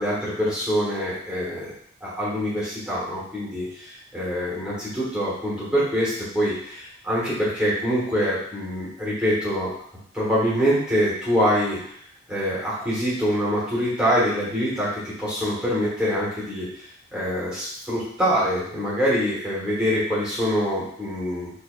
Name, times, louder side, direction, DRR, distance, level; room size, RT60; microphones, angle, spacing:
voice 1, 0.0-1.7 2.0-9.7 10.1-11.8 12.3-16.7 17.1-21.5, equal, 5° right, -9 dB, 1.4 m, -25 dB
4.5 x 2.7 x 2.3 m, 0.64 s
head